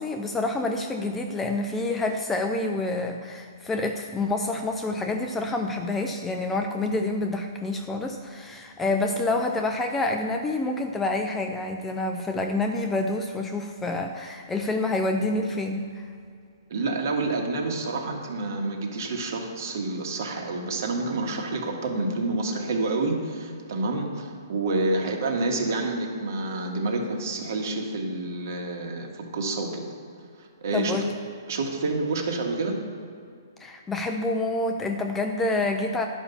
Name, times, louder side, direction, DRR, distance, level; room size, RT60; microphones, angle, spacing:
voice 1, 0.0-16.0 30.7-31.1 33.6-36.1, left 2 dB, 5° left, 4 dB, 0.4 m, -27 dB
voice 2, 16.7-29.9 30.4-30.9 31.5-32.8, right 2 dB, 50° right, 2 dB, 1.7 m, -28 dB
11.0 x 5.5 x 7.0 m, 2.3 s
hypercardioid pair, 165°, 2 cm